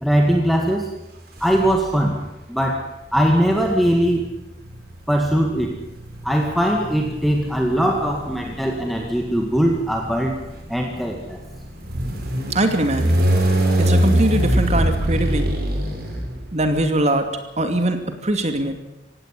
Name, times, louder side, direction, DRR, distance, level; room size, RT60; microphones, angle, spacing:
voice 1, 0.0-0.9 1.4-2.2 2.5-4.3 5.1-5.8 6.2-10.4 10.7-11.4, equal, ahead, 1 dB, 2.0 m, -20 dB
sound 1, 1.4-2.1 3.1-16.8, right 1 dB, 55° right, 5.2 m, -24 dB
voice 2, 12.5-13.2 13.8-15.5 16.5-18.8, right 1 dB, 40° right, 7 dB, 2.6 m, -22 dB
17.5 x 16.5 x 10.0 m, 0.94 s
head